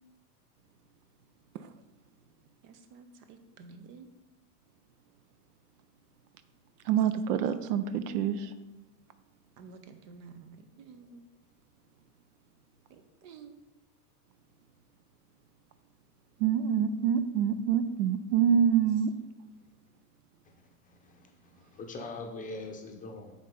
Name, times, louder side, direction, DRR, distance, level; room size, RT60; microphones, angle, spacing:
voice 1, 2.6-4.1 7.2-7.3 9.6-11.2 12.9-13.5 22.0-22.1, right 5 dB, 60° right, 0.9 m, -51 dB
voice 2, 6.9-8.5 16.4-19.1, right 8 dB, 90° right, 0.6 m, -26 dB
voice 3, 20.8-23.3, left 3 dB, 20° left, 0.7 m, -42 dB
7.5 x 4.1 x 3.8 m
supercardioid pair, 125°, 45 cm